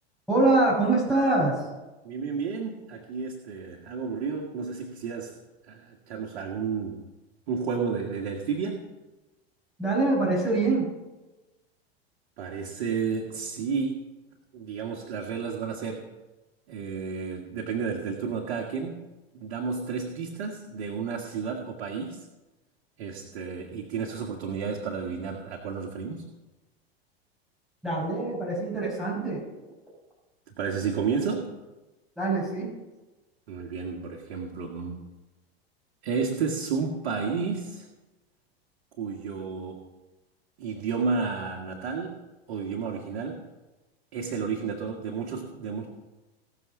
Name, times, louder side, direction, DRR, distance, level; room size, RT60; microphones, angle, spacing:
voice 1, 0.3-1.7 9.8-10.9 27.8-29.4 32.2-32.7, right 2 dB, ahead, -6 dB, 5.3 m, -24 dB
voice 2, 2.0-5.4 5.7-7.0 7.5-8.8 12.4-14.0 14.5-16.0 16.7-19.0 19.3-22.2 23.0-26.2 30.6-31.5 33.5-35.0 36.0-37.9 39.0-39.8 40.6-42.2 42.5-43.5 44.1-45.9, right 5 dB, 65° right, 0 dB, 1.9 m, -31 dB
18.5 x 6.4 x 6.1 m, 1.1 s
hypercardioid pair, 90°, 32 cm